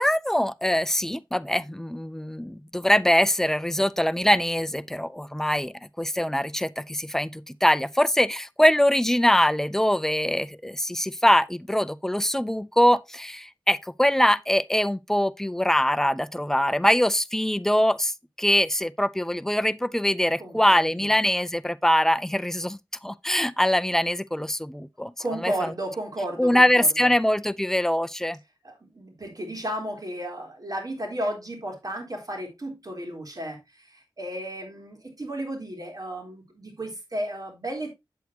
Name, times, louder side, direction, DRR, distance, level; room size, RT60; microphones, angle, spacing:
voice 1, 0.0-18.1 18.4-22.8 23.0-25.1 25.4-25.5 26.4-28.4, left 1 dB, 5° left, 0.5 m, -23 dB
voice 2, 20.4-21.1 25.2-27.1 28.6-37.9, right 1 dB, 45° right, 3.8 m, -34 dB
8.3 x 7.9 x 2.9 m
cardioid pair, 45°, 8 cm